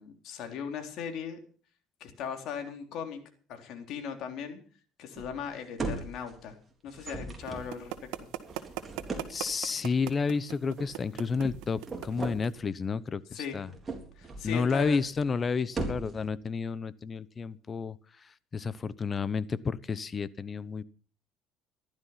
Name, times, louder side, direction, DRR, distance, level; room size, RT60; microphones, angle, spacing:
voice 1, 0.0-1.4 2.0-3.2 3.5-4.6 5.0-6.6 6.8-8.3 13.3-13.6 14.2-15.0, left 7 dB, 65° left, 4 dB, 3.6 m, -38 dB
sound 1, 5.1-5.5 5.8-6.5 6.9-9.5 10.8-11.0 11.3-12.4 13.5-14.5 14.8-15.3 15.6-16.3, right 3 dB, 25° right, 3.8 m, -38 dB
sound 2, 7.5-12.5, right 14 dB, 85° right, 1.7 m, -39 dB
voice 2, 9.3-13.7 14.4-18.0 18.5-20.8, left 5 dB, 30° left, 17 dB, 0.9 m, -31 dB
15.0 x 12.0 x 5.8 m, 0.42 s
cardioid pair, 120°, 0 cm